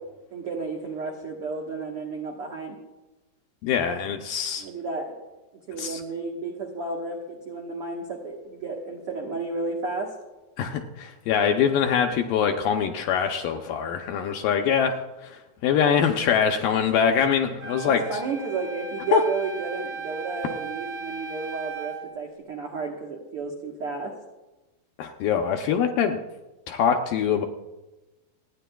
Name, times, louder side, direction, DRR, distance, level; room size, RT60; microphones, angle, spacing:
voice 1, 0.3-2.8 4.6-5.1 5.7-10.1 17.8-24.2 25.8-25.9, right 3 dB, 80° right, 0 dB, 1.2 m, -32 dB
voice 2, 3.6-4.6 5.8-6.0 10.6-18.0 19.1-19.2 25.0-26.2 26.7-27.5, left 7 dB, 80° left, 4 dB, 2.1 m, -23 dB
Wind instrument woodwind instrument, 17.6-22.1, right 4 dB, 55° right, 2.5 m, -37 dB
29.0 x 10.0 x 2.3 m, 1.1 s
omnidirectional pair, 4.6 m